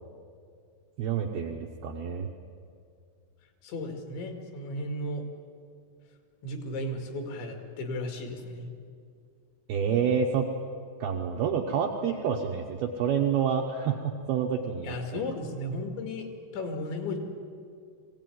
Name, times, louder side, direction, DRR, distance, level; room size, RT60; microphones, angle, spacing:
voice 1, 1.0-2.3 9.7-10.5 11.0-15.2, right 7 dB, 80° right, 2 dB, 2.3 m, -28 dB
voice 2, 3.6-5.2 6.4-8.7 14.8-16.3 16.5-17.2, left 1 dB, 65° left, 4 dB, 4.2 m, -35 dB
21.0 x 16.5 x 9.3 m, 2.3 s
omnidirectional pair, 5.8 m